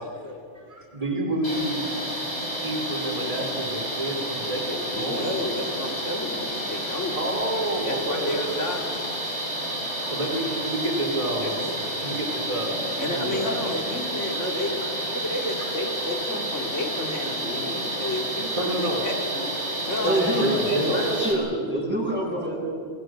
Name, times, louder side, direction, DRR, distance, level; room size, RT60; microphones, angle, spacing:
voice 1, 0.0-0.4 4.9-7.2 7.8-9.4 11.4-11.8 13.0-19.5 19.8-20.8 22.0-22.2, left 1 dB, 90° left, 1 dB, 3.3 m, -31 dB
voice 2, 0.5-1.9 2.6-5.3 7.1-8.4 9.4-13.6 14.3-14.4 18.6-19.1 20.0-21.0, right 1 dB, 30° right, 1 dB, 3.8 m, -29 dB
sound 1, 1.4-21.3, right 1 dB, 65° left, 5.2 m, -30 dB
voice 3, 20.0-22.5, right 1 dB, 10° right, -8 dB, 7.5 m, -25 dB
25.5 x 24.5 x 6.5 m, 2.2 s
omnidirectional pair, 1.2 m